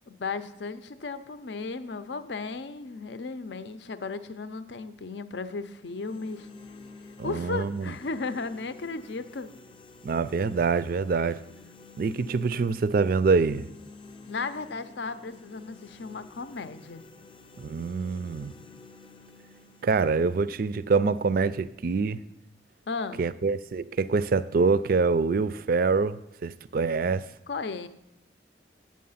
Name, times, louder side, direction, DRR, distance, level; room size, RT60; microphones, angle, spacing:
voice 1, 0.1-6.5 7.2-9.5 14.3-17.0 22.9-23.3 27.5-27.9, left 4 dB, 70° left, 0.6 m, -35 dB
sound 1, 5.7-21.7, left 3 dB, 30° left, 0.5 m, -51 dB
voice 2, 7.2-7.9 10.0-11.4 12.0-13.7 17.6-18.5 19.8-22.2 23.2-27.3, right 4 dB, 50° right, 0.4 m, -25 dB
8.5 x 7.5 x 5.6 m
head